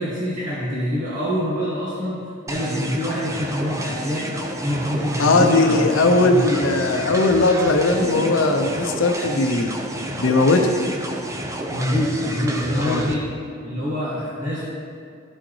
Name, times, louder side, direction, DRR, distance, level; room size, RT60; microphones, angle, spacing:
voice 1, 0.0-4.3 4.6-6.6 7.9-8.3 11.7-13.3 13.6-14.6, equal, 40° right, -9 dB, 1.6 m, -25 dB
sound 1, 2.5-13.1, right 1 dB, 15° right, 0.6 m, -30 dB
voice 2, 5.2-9.8 10.2-10.7 12.8-13.1, left 2 dB, 75° left, 4 dB, 0.7 m, -18 dB
13.5 x 6.3 x 3.2 m, 2.4 s
head